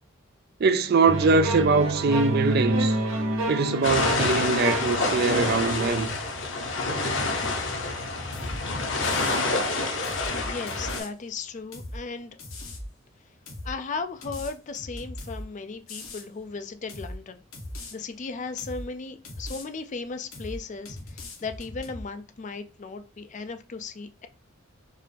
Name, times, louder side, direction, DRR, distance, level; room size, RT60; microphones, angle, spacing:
voice 1, 0.6-3.0 3.5-6.1, right 4 dB, 50° right, 0.4 m, -22 dB
sound 1, 1.1-6.0, right 1 dB, 75° right, 1.0 m, -28 dB
sound 2, 3.8-11.0, left 3 dB, 60° left, 0.9 m, -27 dB
sound 3, 8.3-8.6 9.0-9.4 10.0-11.1 11.7-12.0 12.4-12.9 13.5-13.7 14.2-15.4 15.9-16.3 16.9-17.2 17.5-17.9 18.6-18.9 19.2-19.7 20.3-20.6 20.9-22.0, left 1 dB, 85° left, 1.2 m, -39 dB
voice 2, 10.3-12.4 13.6-17.4 17.9-24.3, left 4 dB, 35° left, 0.4 m, -36 dB
4.6 x 2.5 x 3.4 m
head